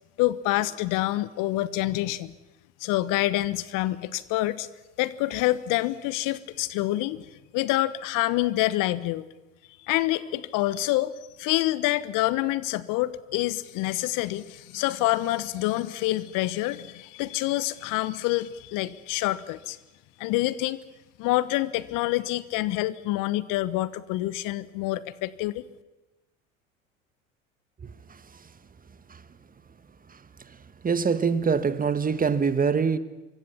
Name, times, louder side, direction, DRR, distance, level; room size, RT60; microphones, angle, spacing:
voice 1, 0.2-2.3 2.8-4.7 5.0-7.2 7.5-9.3 9.8-11.1 11.4-19.8 20.2-20.8 21.2-25.6, left 17 dB, 55° left, 1.3 m, -27 dB
voice 2, 27.8-28.4 29.1-29.2 30.1-30.6 30.8-33.0, right 5 dB, 20° right, 1.6 m, -25 dB
26.5 x 23.5 x 7.2 m
hypercardioid pair, 75°, 39 cm